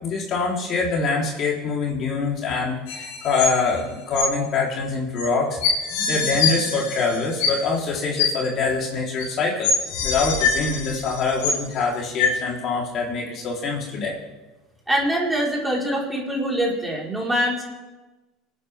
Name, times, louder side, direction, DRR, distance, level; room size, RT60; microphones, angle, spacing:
voice 1, 0.0-5.6 6.1-9.7 10.0-14.2, left 4 dB, 50° left, -2 dB, 4.0 m, -24 dB
sound 1, 2.9-3.8 4.1-4.2 5.2-5.3 5.6-7.8 8.2-8.3 9.2-9.3 9.6-11.8 12.2-12.3, left 5 dB, 70° left, 3.7 m, -24 dB
voice 2, 14.9-17.6, equal, 10° right, -3 dB, 4.7 m, -24 dB
26.5 x 9.8 x 3.7 m, 1.1 s
hypercardioid pair, 80°, 0 cm